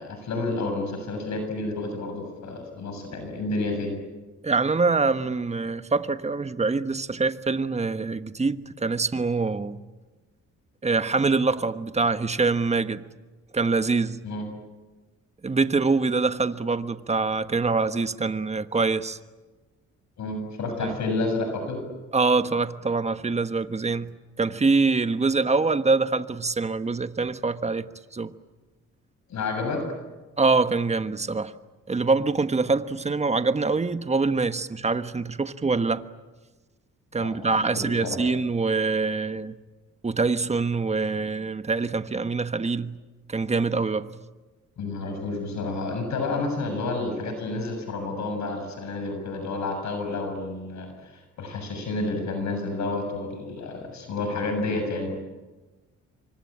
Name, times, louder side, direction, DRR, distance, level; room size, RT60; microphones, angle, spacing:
voice 1, 0.0-4.0 14.2-14.5 20.2-21.8 29.3-29.8 37.2-38.2 44.8-55.1, left 3 dB, 65° left, 7.0 m, -30 dB
voice 2, 4.4-9.8 10.8-13.0 13.5-14.2 15.4-19.2 20.8-20.9 22.1-24.1 24.4-27.9 28.1-28.3 30.4-31.5 31.9-36.1 37.1-39.6 40.0-43.0 43.3-44.1, right 4 dB, 20° right, 1.3 m, -24 dB
27.0 x 24.5 x 8.8 m
cardioid pair, 90°, 30 cm